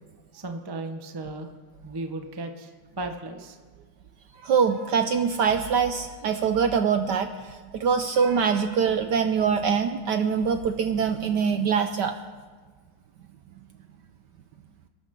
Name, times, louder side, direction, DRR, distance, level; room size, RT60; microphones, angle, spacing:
voice 1, 0.3-1.5 1.8-2.7 3.0-3.6, right 2 dB, 30° right, 5 dB, 0.4 m, -35 dB
voice 2, 4.4-12.2, right 6 dB, 70° right, 8 dB, 1.0 m, -24 dB
27.5 x 12.5 x 3.7 m, 1.5 s
omnidirectional pair, 2.4 m